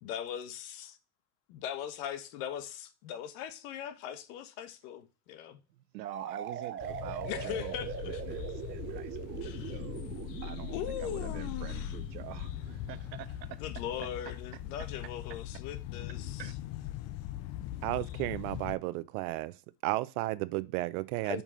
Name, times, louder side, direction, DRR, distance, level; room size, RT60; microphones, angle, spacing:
voice 1, 0.0-1.0 1.5-5.6 7.2-8.2 9.4-9.8 10.7-12.0 13.6-16.5 21.2-21.4, left 10 dB, 60° left, 1.3 m, -40 dB
voice 2, 5.8-13.6 14.5-14.6 16.4-16.6, right 14 dB, 90° right, 0.9 m, -46 dB
sound 1, 6.0-13.7, right 9 dB, 25° right, 0.7 m, -42 dB
sound 2, 6.8-18.8, left 12 dB, 35° left, 0.4 m, -41 dB
voice 3, 17.8-19.5 19.8-21.4, right 19 dB, 60° right, 0.7 m, -33 dB
5.4 x 4.7 x 5.5 m
supercardioid pair, 115°, 49 cm